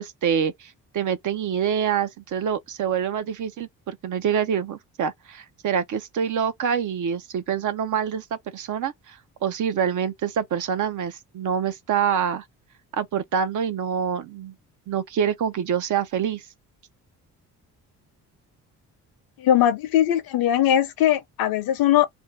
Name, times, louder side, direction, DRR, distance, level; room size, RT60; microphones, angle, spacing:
voice 1, 0.0-12.4 13.0-14.5 14.9-16.4, right 8 dB, 55° right, 0.6 m, -26 dB
voice 2, 19.4-22.1, left 11 dB, 70° left, 0.7 m, -20 dB
2.7 x 2.3 x 3.2 m
supercardioid pair, 65°, 37 cm